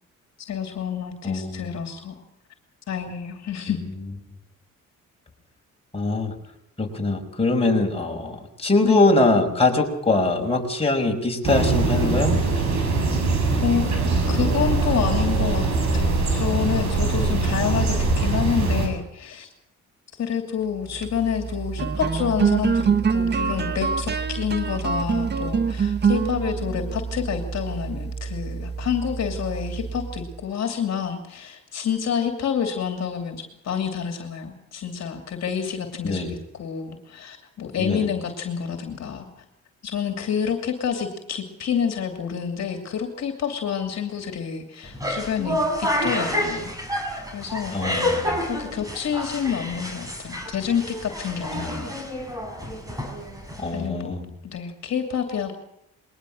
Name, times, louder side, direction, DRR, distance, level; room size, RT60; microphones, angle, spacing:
voice 1, 0.4-2.2 2.9-3.8 8.8-9.1 13.1-13.2 13.6-13.8 14.3-15.7 15.9-19.5 20.2-39.3 39.8-46.7 47.3-47.7 48.4-51.9 53.7-54.1 54.4-55.5, left 7 dB, 60° left, 5 dB, 2.8 m, -28 dB
voice 2, 1.2-1.7 5.9-6.3 6.8-12.3 36.0-36.3 37.8-38.0 47.7-48.4 51.6-51.8 53.6-54.3, left 2 dB, 20° left, 1 dB, 5.3 m, -22 dB
sound 1, 11.4-18.9, right 3 dB, 65° right, 7.2 m, -22 dB
sound 2, 20.8-30.4, right 6 dB, 35° right, 1.4 m, -26 dB
sound 3, 44.8-53.9, left 1 dB, 10° right, 6.2 m, -29 dB
21.5 x 19.0 x 6.5 m, 0.82 s
cardioid pair, 90°, 30 cm